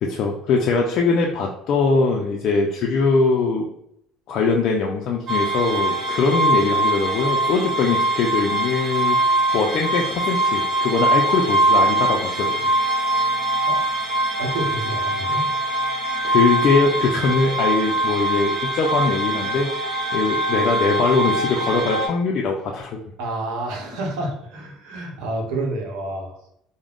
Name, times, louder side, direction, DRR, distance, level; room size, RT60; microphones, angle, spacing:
voice 1, 0.0-3.7 4.3-9.2 9.5-12.7 16.2-19.8 20.1-23.0, left 4 dB, 55° left, 0 dB, 0.3 m, -21 dB
sound 1, 5.3-22.1, right 2 dB, 40° right, 0.7 m, -22 dB
voice 2, 14.4-15.5 23.2-26.4, right 2 dB, 80° right, 0 dB, 0.7 m, -29 dB
2.3 x 2.0 x 3.4 m, 0.74 s
cardioid pair, 125°, 0 cm